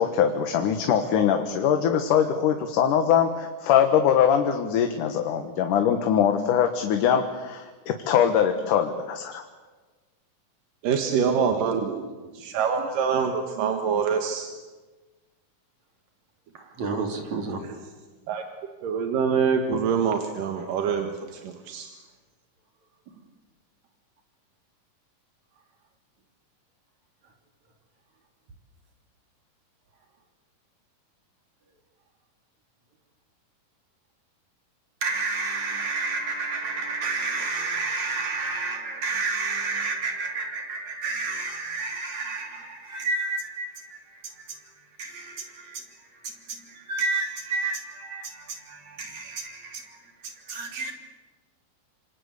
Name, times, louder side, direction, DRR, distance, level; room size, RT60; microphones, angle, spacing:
voice 1, 0.0-9.4, left 8 dB, 75° left, 2.9 m, -22 dB
voice 2, 10.8-12.0 12.3-14.5 18.3-18.4 18.8-21.9, right 6 dB, 85° right, 3.2 m, -25 dB
voice 3, 16.5-17.6 35.0-50.9, right 3 dB, 60° right, 4.3 m, -31 dB
27.5 x 27.0 x 8.2 m
omnidirectional pair, 3.7 m